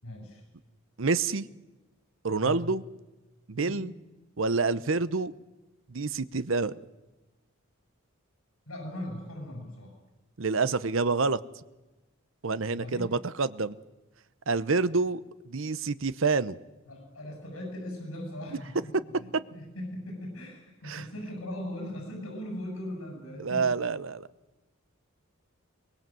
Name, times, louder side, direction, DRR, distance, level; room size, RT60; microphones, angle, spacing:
voice 1, 0.0-0.4 2.4-2.7 3.5-3.9 8.7-9.9 12.6-13.1 16.8-18.9 19.2-23.7, left 1 dB, 75° left, 2 dB, 7.4 m, -39 dB
voice 2, 1.0-1.4 2.2-2.8 3.5-3.9 4.4-5.3 5.9-6.8 10.4-11.4 12.4-13.8 14.5-15.2 15.5-16.6 20.8-21.0 23.4-24.3, right 4 dB, 65° right, 16 dB, 0.8 m, -27 dB
23.5 x 21.5 x 7.7 m, 1.1 s
head